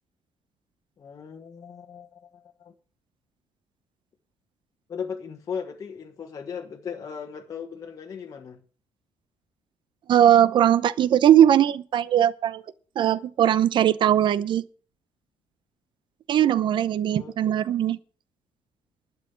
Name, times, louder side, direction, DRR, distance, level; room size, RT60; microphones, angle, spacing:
voice 1, 1.0-2.7 4.9-8.6 17.1-17.3, left 6 dB, 35° left, 1.3 m, -37 dB
voice 2, 10.1-12.6 13.0-14.6 16.3-18.0, right 10 dB, 50° right, 0.8 m, -19 dB
12.0 x 7.1 x 9.3 m
cardioid pair, 170°, 11 cm